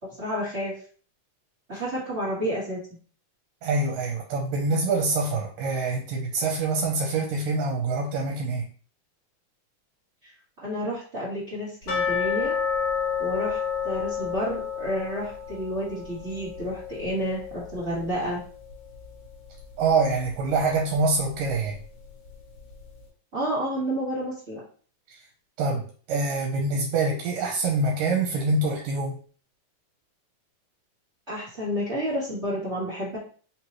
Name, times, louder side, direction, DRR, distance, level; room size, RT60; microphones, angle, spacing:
voice 1, 0.2-0.7 1.7-2.8 10.2-10.3 10.6-12.6 13.2-18.4 23.3-24.6 31.3-33.2, equal, 60° right, -7 dB, 0.7 m, -30 dB
voice 2, 3.6-8.7 19.8-21.8 25.1-25.2 25.6-29.2, right 3 dB, 75° right, 1 dB, 2.3 m, -25 dB
sound 1, 11.9-18.7 19.0-19.1 19.6-19.7 20.3-20.4, left 7 dB, 40° left, 2.2 m, -30 dB
5.1 x 3.0 x 3.0 m, 0.42 s
omnidirectional pair, 4.0 m